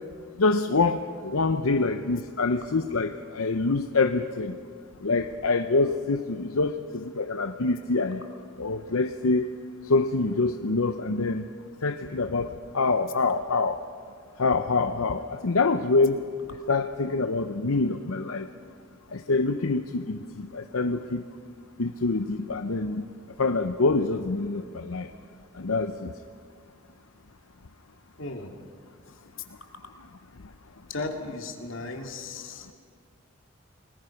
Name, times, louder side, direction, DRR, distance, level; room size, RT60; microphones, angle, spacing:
voice 1, 0.4-4.5 5.0-8.2 8.6-9.5 9.9-11.4 11.8-12.5 12.7-13.8 14.4-16.2 16.7-18.5 19.1-21.2 21.8-23.0 23.4-25.1 25.6-26.1, left 3 dB, 85° left, 7 dB, 0.8 m, -25 dB
voice 2, 28.2-28.5 30.9-32.7, left 3 dB, 65° left, 3 dB, 2.4 m, -35 dB
29.5 x 20.0 x 5.9 m, 2.1 s
head